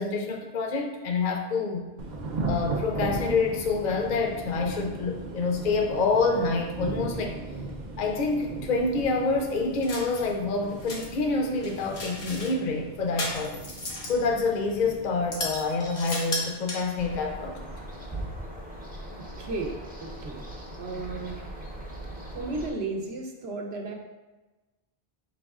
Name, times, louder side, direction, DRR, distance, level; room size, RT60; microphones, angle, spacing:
voice 1, 0.0-1.9 2.5-7.4 8.0-13.6 14.1-17.6, left 3 dB, 55° left, 2 dB, 0.6 m, -27 dB
Thunder / Rain, 2.0-18.2, right 3 dB, 55° right, 0.6 m, -38 dB
sound 1, 9.8-10.3 10.7-11.1 11.6-12.5 13.2-14.2 14.7-14.8 15.3-17.1, left 2 dB, 85° left, 1.3 m, -35 dB
sound 2, 17.0-22.7, right 1 dB, 10° right, 0.5 m, -39 dB
voice 2, 19.2-20.5 20.8-21.4 22.3-23.9, right 3 dB, 80° right, 2 dB, 1.0 m, -34 dB
5.0 x 4.1 x 2.3 m, 1.1 s
omnidirectional pair, 1.1 m